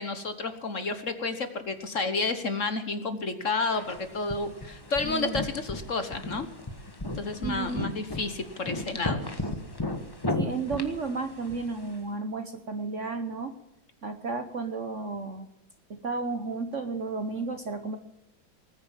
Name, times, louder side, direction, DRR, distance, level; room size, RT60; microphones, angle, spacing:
voice 1, 0.0-6.5 7.1-9.3, left 3 dB, 45° left, 9 dB, 1.4 m, -31 dB
sound 1, 3.8-12.0, left 2 dB, 15° left, 1.2 m, -35 dB
voice 2, 5.0-5.5 7.4-7.9 10.3-13.6 14.0-15.5 15.9-18.0, right 4 dB, 45° right, 9 dB, 1.1 m, -33 dB
20.0 x 9.7 x 7.3 m, 0.90 s
omnidirectional pair, 2.1 m